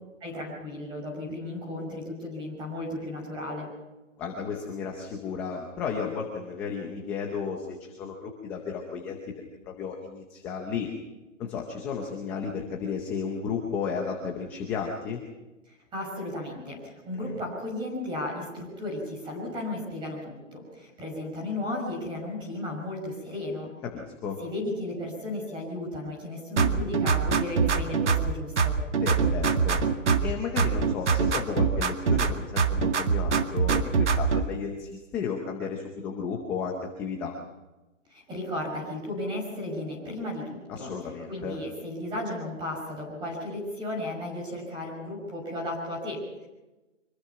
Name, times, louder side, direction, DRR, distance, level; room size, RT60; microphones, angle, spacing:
voice 1, 0.2-3.7 15.7-23.7 24.4-28.8 38.1-40.9 41.3-46.5, left 1 dB, 10° right, -1 dB, 6.1 m, -34 dB
voice 2, 4.2-9.2 9.7-10.9 11.4-15.2 23.9-24.4 29.0-29.8 30.2-37.3 40.7-41.6, left 6 dB, 5° left, 1 dB, 0.7 m, -33 dB
sound 1, 26.6-28.3 28.6-30.3 30.6-32.3 32.6-34.4, right 5 dB, 65° right, 2.2 m, -23 dB
25.0 x 21.0 x 5.8 m, 1.1 s
hypercardioid pair, 165°, 38 cm